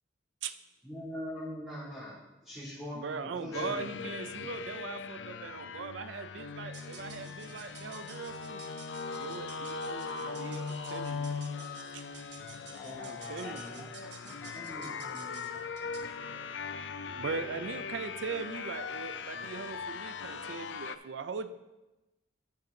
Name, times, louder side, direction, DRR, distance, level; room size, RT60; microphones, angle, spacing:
voice 1, 0.8-4.1 4.3-4.5 12.8-13.9 14.5-15.5, equal, ahead, -13 dB, 2.7 m, -43 dB
voice 2, 2.9-8.6 9.2-11.2 11.9-12.1 12.9-13.9 17.2-21.5, right 5 dB, 90° right, 11 dB, 0.5 m, -40 dB
sound 1, 3.5-21.0, left 5 dB, 80° left, 0.5 m, -40 dB
sound 2, 6.6-16.2, right 5 dB, 70° right, 1.0 m, -53 dB
voice 3, 12.7-13.1 13.4-16.6, equal, 15° left, 2 dB, 0.9 m, -55 dB
9.4 x 6.9 x 3.9 m, 1.0 s
head